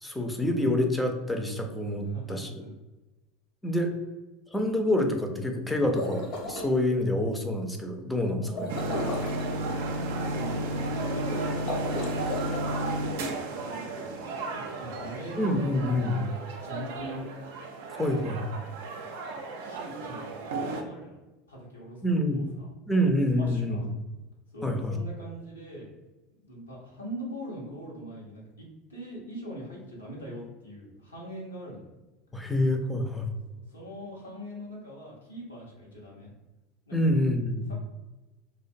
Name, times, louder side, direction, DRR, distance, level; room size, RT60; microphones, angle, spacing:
voice 1, 0.0-2.6 3.6-3.9 4.5-8.7 15.4-16.3 18.0-18.5 22.0-22.4 22.9-23.8 24.6-25.0 32.3-33.3 36.9-37.7, left 1 dB, 5° left, 4 dB, 0.5 m, -27 dB
voice 2, 2.0-2.7 8.4-9.7 10.2-12.3 12.6-14.3 14.8-15.6 16.6-17.2 18.2-18.4 19.6-21.2 21.5-22.0 22.3-22.7 23.3-23.9 24.5-25.9 26.3-31.8 33.1-33.2 33.7-36.3 36.9-37.3 37.7-37.8, right 1 dB, 85° left, -4 dB, 0.7 m, -41 dB
sound 1, 5.8-6.7 8.5-9.4 11.5-12.6, left 2 dB, 50° left, 0.7 m, -34 dB
sound 2, 8.7-20.8, right 2 dB, 65° right, 0.4 m, -33 dB
2.4 x 2.1 x 2.6 m, 1.1 s
figure-of-eight pair, 75°, 0 cm